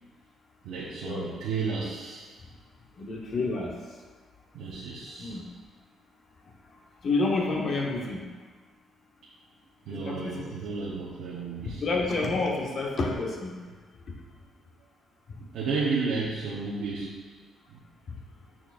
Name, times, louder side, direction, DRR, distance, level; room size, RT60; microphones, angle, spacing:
voice 1, 0.6-2.3 4.5-5.4 9.9-11.8 15.5-17.2 17.7-17.8, right 4 dB, 85° right, -6 dB, 1.0 m, -32 dB
voice 2, 3.0-3.7 5.2-5.4 7.0-8.2 9.9-10.5 11.8-13.6, left 3 dB, 55° left, -1 dB, 1.1 m, -29 dB
8.8 x 4.5 x 2.5 m, 1.4 s
cardioid pair, 90°, 0 cm